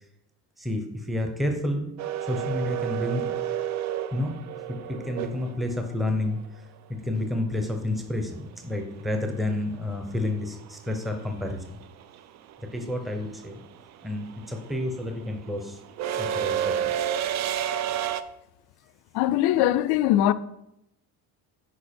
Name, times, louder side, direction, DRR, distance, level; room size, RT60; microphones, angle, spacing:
voice 1, 0.6-1.9 2.3-3.4 4.1-4.3 4.7-6.4 6.9-11.8 12.7-13.6 14.0-15.8 16.2-16.8, left 1 dB, ahead, 0.7 m, -30 dB
sound 1, 2.0-6.0 8.5-8.6 9.8-10.2 10.4-18.2, right 10 dB, 45° right, 0.4 m, -30 dB
voice 2, 19.1-20.3, left 13 dB, 70° left, 0.6 m, -21 dB
10.0 x 4.6 x 4.4 m
cardioid pair, 155°, 39 cm